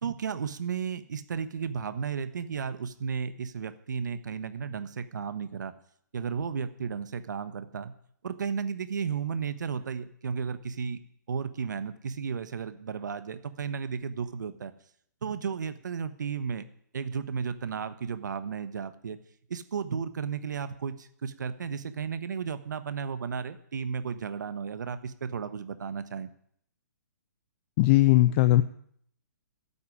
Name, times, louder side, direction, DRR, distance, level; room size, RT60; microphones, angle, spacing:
voice 1, 0.0-5.7 6.1-7.9 8.2-11.0 11.3-14.7 15.2-16.6 16.9-19.2 19.5-26.3, right 6 dB, 70° right, 12 dB, 1.3 m, -34 dB
voice 2, 27.8-28.6, left 16 dB, 35° left, 12 dB, 0.7 m, -19 dB
14.0 x 8.7 x 9.9 m, 0.66 s
hypercardioid pair, 140°, 10 cm